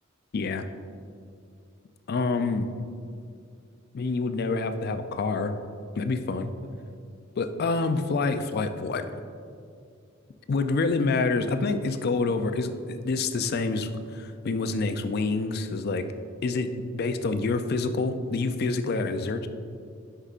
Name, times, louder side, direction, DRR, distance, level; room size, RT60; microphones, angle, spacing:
voice 1, 0.3-0.6 2.1-2.7 3.9-5.5 6.0-6.5 7.4-9.1 10.5-16.0 16.4-19.5, left 3 dB, 50° left, 9 dB, 0.4 m, -27 dB
9.9 x 5.6 x 2.5 m, 2.3 s
head